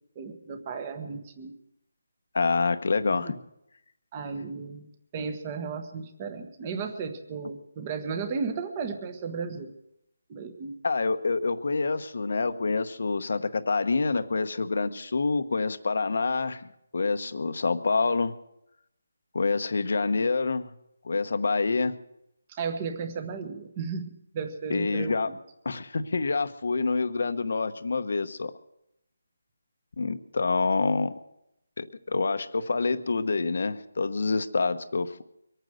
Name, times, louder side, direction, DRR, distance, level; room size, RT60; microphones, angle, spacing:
voice 1, 0.1-1.6 3.2-3.3 4.1-9.7 10.3-10.8 22.5-25.4, right 5 dB, 20° right, 7 dB, 1.3 m, -34 dB
voice 2, 2.3-3.4 10.8-16.6 16.9-18.3 19.3-20.7 21.0-21.9 24.7-25.3 25.6-28.5 30.0-31.2 31.8-35.2, left 4 dB, 60° left, 10 dB, 1.0 m, -27 dB
23.5 x 9.2 x 6.4 m, 0.82 s
hypercardioid pair, 170°, 0 cm